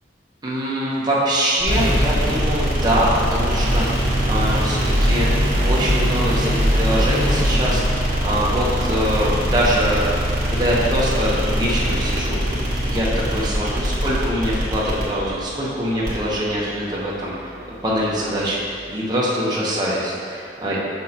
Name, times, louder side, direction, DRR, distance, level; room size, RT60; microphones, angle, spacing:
voice 1, 0.4-10.0 10.4-17.5 17.8-20.8, equal, 25° right, -6 dB, 1.0 m, -23 dB
sound 1, 1.6-18.7, equal, 45° right, 1.5 m, -22 dB
6.4 x 6.1 x 2.9 m, 2.4 s
head